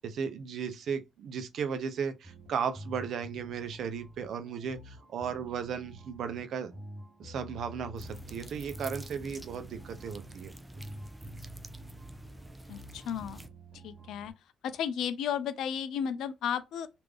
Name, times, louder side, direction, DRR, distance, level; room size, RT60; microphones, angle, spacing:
voice 1, 0.0-6.7 7.2-10.5, right 6 dB, 60° right, 0.5 m, -35 dB
sound 1, 2.2-14.3, right 1 dB, 25° right, 0.9 m, -48 dB
sound 2, 8.0-13.5, right 1 dB, 5° right, 0.3 m, -48 dB
voice 2, 12.7-13.4 13.8-14.3 14.7-16.9, left 8 dB, 85° left, 0.4 m, -33 dB
3.3 x 2.5 x 3.3 m
cardioid pair, 165°, 0 cm